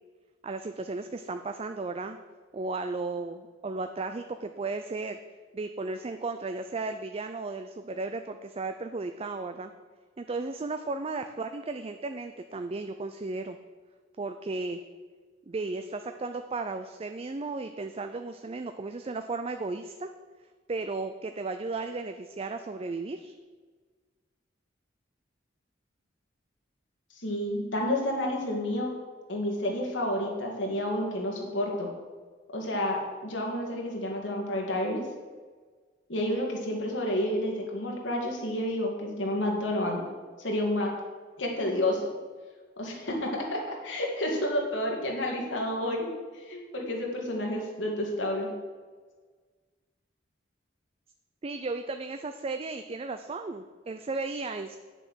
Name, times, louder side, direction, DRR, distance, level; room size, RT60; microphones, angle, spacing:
voice 1, 0.4-2.2 2.5-5.2 5.5-9.7 10.2-13.6 14.2-14.8 15.5-20.1 20.7-23.3 51.4-54.8, right 3 dB, 30° right, 8 dB, 0.4 m, -35 dB
voice 2, 27.2-28.9 29.3-31.9 32.5-35.0 36.1-40.0 40.4-40.9 41.4-42.1 42.8-46.1 46.5-48.5, left 1 dB, 85° left, -1 dB, 2.4 m, -30 dB
9.2 x 6.9 x 6.4 m, 1.5 s
head